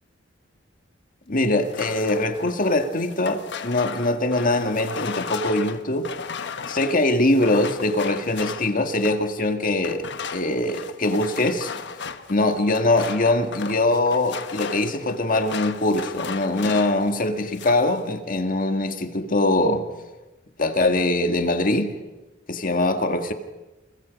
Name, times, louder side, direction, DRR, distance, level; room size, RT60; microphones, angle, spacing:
voice 1, 1.3-6.1 6.7-10.0 10.3-11.7 12.3-19.9 20.6-21.9 22.5-23.3, left 2 dB, 45° left, 1.9 m, -22 dB
sound 1, 1.6-9.3 9.8-17.1 17.4-17.9, left 5 dB, 60° left, 1.2 m, -35 dB
29.5 x 24.5 x 5.3 m
head